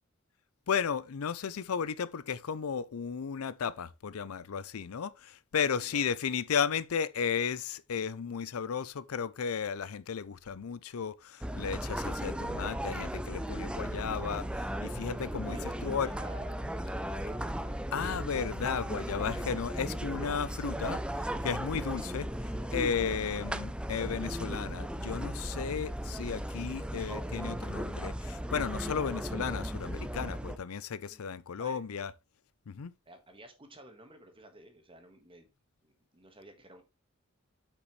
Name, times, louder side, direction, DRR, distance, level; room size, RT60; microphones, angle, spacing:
voice 1, 0.7-15.6 15.8-16.1 17.9-21.0 21.4-22.2 22.7-32.1 32.7-32.9, left 6 dB, 90° left, 0.5 m, -34 dB
voice 2, 5.6-6.0 15.4-16.5 16.8-17.9 21.9-22.0 31.1-31.2 31.6-31.8 33.0-35.5 35.8-36.8, right 1 dB, 25° right, 1.5 m, -52 dB
sound 1, 11.4-30.6, equal, 5° right, 0.4 m, -36 dB
8.1 x 6.1 x 3.1 m
head